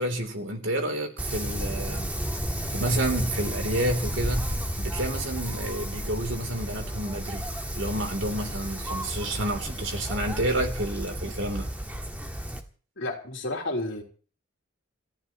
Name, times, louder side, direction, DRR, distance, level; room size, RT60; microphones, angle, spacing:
voice 1, 0.0-2.1 2.7-7.4 7.7-11.7, right 1 dB, 60° right, 3.2 m, -29 dB
Wind, 1.2-12.6, equal, 5° right, 1.4 m, -32 dB
voice 2, 13.0-14.0, left 2 dB, 60° left, 3.6 m, -31 dB
28.0 x 14.5 x 3.0 m
head